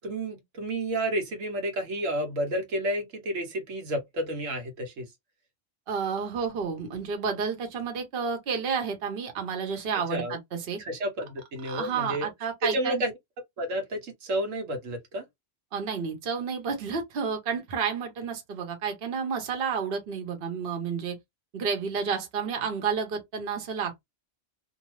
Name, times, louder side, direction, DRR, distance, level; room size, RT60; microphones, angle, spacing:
voice 1, 0.0-5.1 10.1-10.3 10.8-12.3 12.6-13.1 13.6-15.2, right 1 dB, 85° right, 1.3 m, -31 dB
voice 2, 5.9-10.8 11.6-13.0 15.7-21.2 21.5-24.0, right 6 dB, 50° right, 1.0 m, -31 dB
2.7 x 2.3 x 3.0 m
omnidirectional pair, 1.3 m